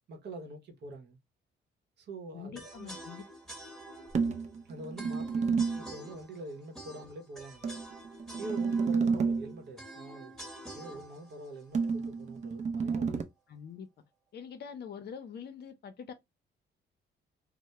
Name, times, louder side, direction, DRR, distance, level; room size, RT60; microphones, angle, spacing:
voice 1, 0.1-1.2 2.0-2.9 4.6-5.5 5.8-7.7 8.3-10.3 10.7-13.2, right 2 dB, 60° right, 0.8 m, -45 dB
voice 2, 2.3-3.3 13.5-13.9 14.3-16.1, left 7 dB, 55° left, 0.6 m, -44 dB
sound 1, 2.5-12.6, right 1 dB, ahead, 0.9 m, -49 dB
sound 2, 4.1-5.9 7.6-9.6 11.7-13.2, right 5 dB, 35° right, 0.4 m, -30 dB
2.1 x 2.1 x 2.8 m
cardioid pair, 90°, 20 cm